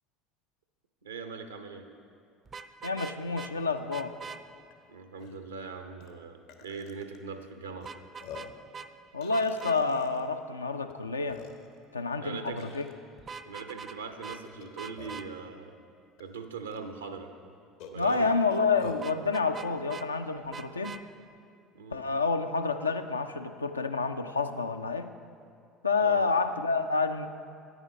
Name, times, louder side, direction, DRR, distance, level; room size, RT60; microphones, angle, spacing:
voice 1, 1.0-1.9 4.9-7.9 12.2-12.7 13.4-15.8 16.2-17.5 17.9-18.3 21.7-22.0 26.0-26.2, right 5 dB, 85° right, 7 dB, 0.5 m, -41 dB
Vehicle horn car horn honking, 2.5-3.5 3.9-4.4 7.8-8.5 8.7-8.9 9.3-9.8 13.2-14.0 14.2-14.4 14.8-15.3 19.0-20.1 20.5-21.0, right 5 dB, 30° right, 0.3 m, -42 dB
voice 2, 2.8-4.1 9.1-11.4 11.9-12.9 17.9-21.0 21.9-25.1 25.8-27.3, left 4 dB, 90° left, 8 dB, 0.3 m, -29 dB
Burping eructation, 4.7-4.8 5.2-5.4 6.0-6.1 6.5-7.2 7.8-7.9 8.2-8.6 9.2-10.2 10.9-11.0 11.3-11.8 12.6-12.9 14.4-15.3 16.2-16.3 16.7-16.8 17.8-19.1, left 7 dB, 65° left, 0.8 m, -46 dB
9.1 x 6.2 x 5.1 m, 2.4 s
figure-of-eight pair, 65°, 0 cm